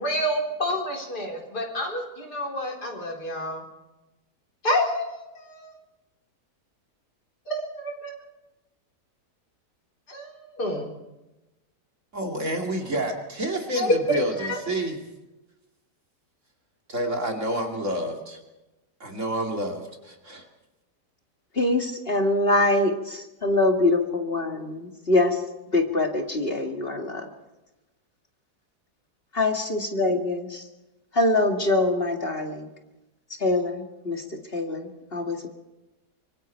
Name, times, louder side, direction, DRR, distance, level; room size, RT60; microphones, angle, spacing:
voice 1, 0.0-3.6 4.6-5.7 7.5-8.1 10.1-10.9 13.8-13.9 14.4-14.6, left 1 dB, 70° left, 0 dB, 4.8 m, -28 dB
voice 2, 12.1-15.0 16.9-18.4 19.0-20.5, right 1 dB, 45° right, 2 dB, 3.0 m, -29 dB
voice 3, 21.5-25.4 25.7-27.3 29.3-30.6 31.1-32.7 33.4-35.5, left 2 dB, 35° left, 4 dB, 2.4 m, -24 dB
25.0 x 23.5 x 4.6 m, 1.0 s
omnidirectional pair, 1.8 m